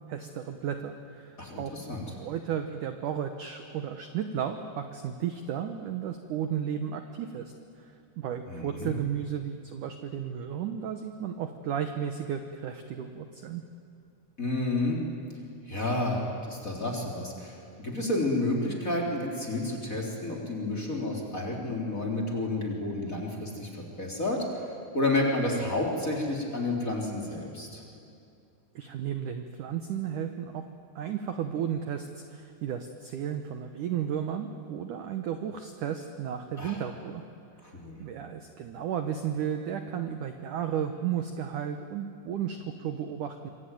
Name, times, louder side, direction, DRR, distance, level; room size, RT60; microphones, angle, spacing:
voice 1, 0.1-1.8 2.1-7.5 7.8-13.6 28.8-30.6 31.0-37.2 38.0-43.5, right 8 dB, 70° right, 7 dB, 2.0 m, -34 dB
voice 2, 1.4-2.0 8.5-8.9 14.4-15.0 15.7-24.7 24.9-27.8 36.6-36.8 37.7-38.0, left 2 dB, 20° left, -1 dB, 3.7 m, -30 dB
26.5 x 24.5 x 9.3 m, 2.5 s
omnidirectional pair, 5.1 m